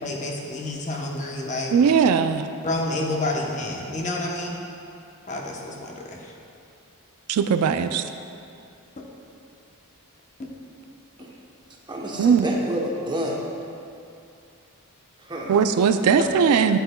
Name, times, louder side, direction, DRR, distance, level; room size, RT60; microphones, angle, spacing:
voice 1, 0.0-1.7 2.6-4.6 5.3-6.3, left 2 dB, 35° left, -1 dB, 0.9 m, -29 dB
voice 2, 1.7-2.5 7.3-8.0 12.2-12.5 15.5-16.8, right 6 dB, 75° right, 9 dB, 0.3 m, -19 dB
voice 3, 11.9-13.4 15.2-15.5, equal, 20° right, -1 dB, 0.8 m, -29 dB
9.1 x 9.0 x 2.2 m, 2.6 s
head